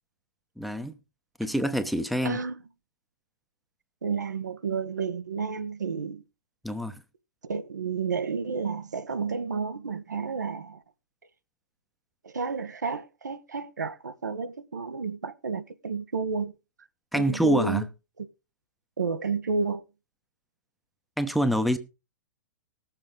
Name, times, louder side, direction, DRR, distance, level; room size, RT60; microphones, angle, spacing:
voice 1, 0.6-1.0 1.4-2.4 6.6-7.0 17.1-17.9 21.2-21.8, right 1 dB, ahead, 1.0 m, -26 dB
voice 2, 2.2-2.5 4.0-6.2 7.5-10.8 12.2-16.5 17.1-17.8 19.0-19.8, right 5 dB, 75° right, 1.2 m, -31 dB
19.5 x 7.4 x 3.7 m
figure-of-eight pair, 110°, 10 cm